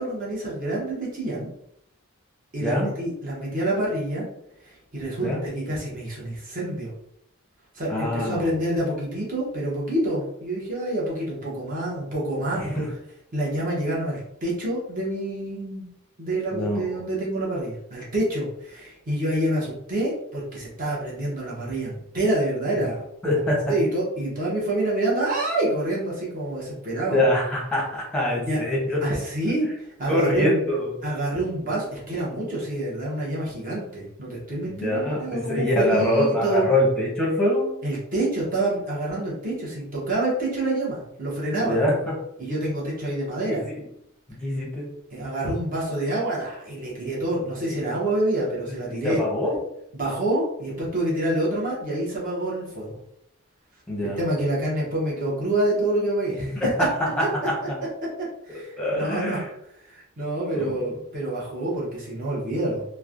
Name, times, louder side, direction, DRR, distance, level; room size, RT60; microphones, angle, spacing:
voice 1, 0.0-1.5 2.5-4.2 4.6-6.9 7.7-12.8 13.3-15.9 16.2-23.4 23.7-27.2 28.4-28.6 29.0-30.6 31.0-36.7 37.8-41.8 42.4-43.7 45.1-49.2 49.9-53.0 54.0-56.7 58.5-59.4 59.8-62.8, right 1 dB, 40° right, -5 dB, 0.8 m, -27 dB
voice 2, 2.6-2.9 5.2-5.4 7.9-8.5 12.5-12.9 16.5-17.0 23.2-23.8 27.1-29.0 30.1-30.9 34.8-37.7 41.6-42.1 43.5-43.8 44.3-44.9 48.9-49.6 53.9-54.2 56.4-56.9 58.8-59.5 60.5-60.8, left 1 dB, 5° left, -4 dB, 0.8 m, -24 dB
3.1 x 2.1 x 2.4 m, 0.76 s
head